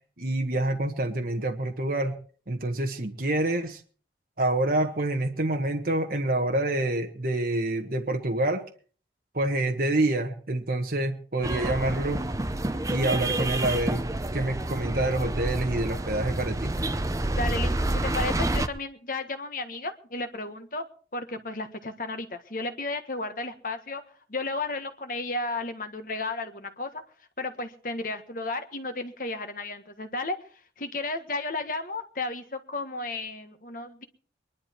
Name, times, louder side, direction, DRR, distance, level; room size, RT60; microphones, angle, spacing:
voice 1, 0.2-2.1 2.5-3.8 4.4-8.6 9.3-12.2 12.9-14.0 14.3-16.7, right 1 dB, 55° right, 3 dB, 1.4 m, -27 dB
sound 1, 11.4-18.7, right 1 dB, 20° right, 0.7 m, -28 dB
voice 2, 17.4-20.9 21.1-24.0 24.3-27.0 27.4-30.4 30.8-34.0, left 2 dB, 50° left, 7 dB, 1.5 m, -33 dB
22.0 x 11.5 x 4.6 m, 0.43 s
head